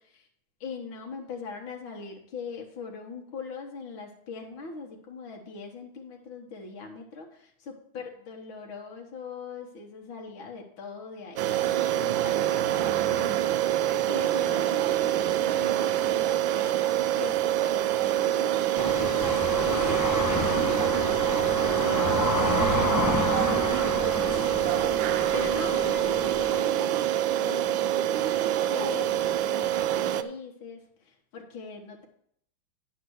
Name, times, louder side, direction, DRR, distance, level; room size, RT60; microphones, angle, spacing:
voice 1, 0.6-13.5 13.9-16.9 17.2-24.7 25.3-32.0, left 5 dB, 80° left, 0 dB, 2.0 m, -41 dB
sound 1, 11.4-30.2, right 12 dB, 80° right, 1.3 m, -26 dB
sound 2, 18.8-26.6, left 1 dB, 15° left, 0.6 m, -29 dB
10.5 x 4.2 x 7.8 m, 0.67 s
omnidirectional pair, 2.2 m